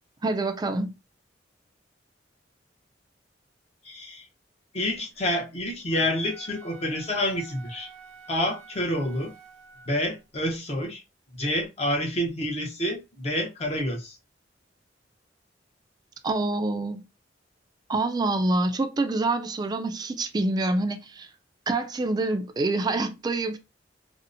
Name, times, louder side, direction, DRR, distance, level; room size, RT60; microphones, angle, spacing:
voice 1, 0.2-0.9 16.2-17.0 17.9-21.3 21.7-23.6, right 2 dB, 20° right, 0.3 m, -26 dB
voice 2, 3.8-4.3 4.7-7.9 8.3-9.3 9.9-11.0 11.3-14.2, left 1 dB, 35° left, 0.7 m, -28 dB
Wind instrument woodwind instrument, 5.8-10.2, right 4 dB, 75° right, 0.7 m, -49 dB
2.6 x 2.1 x 2.5 m
head